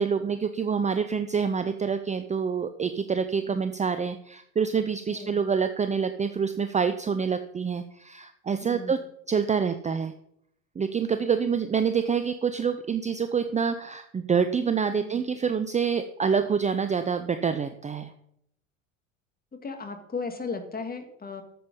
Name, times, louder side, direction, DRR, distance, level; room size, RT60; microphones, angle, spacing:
voice 1, 0.0-9.0 9.3-10.1 10.8-18.1, right 6 dB, 15° right, 10 dB, 0.7 m, -26 dB
voice 2, 8.6-8.9 15.0-15.2 19.6-21.4, left 4 dB, 20° left, 6 dB, 2.3 m, -36 dB
13.0 x 7.5 x 5.5 m, 0.74 s
hypercardioid pair, 75°, 42 cm